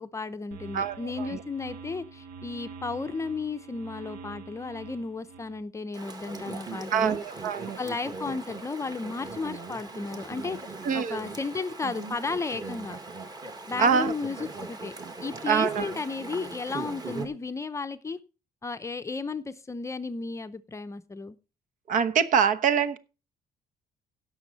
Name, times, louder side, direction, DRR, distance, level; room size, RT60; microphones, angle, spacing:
voice 1, 0.0-7.2 7.8-10.6 10.9-13.0 13.7-14.9 15.2-18.2 18.6-21.4, left 4 dB, 20° left, 0.7 m, -34 dB
sound 1, 0.5-5.6, right 5 dB, 70° right, 1.4 m, -45 dB
voice 2, 0.7-1.4 6.9-7.8 10.8-11.2 13.8-14.1 15.5-15.9 21.9-23.0, right 7 dB, 55° right, 1.1 m, -25 dB
Chatter / Stream, 5.9-17.3, right 3 dB, 25° right, 1.9 m, -40 dB
17.0 x 6.3 x 4.1 m
cardioid pair, 150°, 16 cm